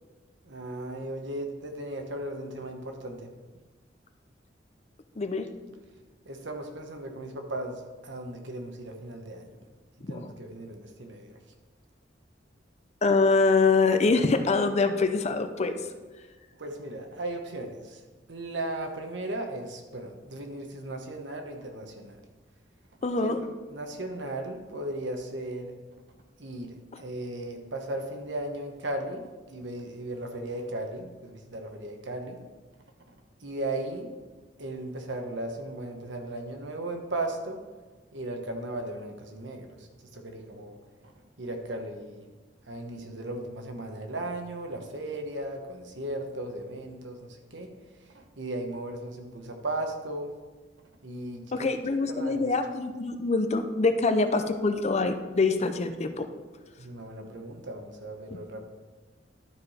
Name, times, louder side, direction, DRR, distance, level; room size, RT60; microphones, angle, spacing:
voice 1, 0.4-3.3 6.2-9.6 10.1-11.4 16.6-18.0 18.3-22.2 23.2-25.7 26.4-29.2 29.5-32.4 33.1-33.2 33.4-34.1 34.6-37.6 38.1-40.8 41.0-41.1 41.4-42.3 42.7-47.7 48.1-50.3 51.0-52.5 56.8-58.7, right 1 dB, 75° right, 4 dB, 1.1 m, -36 dB
voice 2, 5.2-5.5 10.0-10.3 13.0-15.8 23.0-23.4 51.5-56.3 58.3-58.4, left 3 dB, 35° left, 8 dB, 0.6 m, -25 dB
12.0 x 4.8 x 4.3 m, 1.3 s
head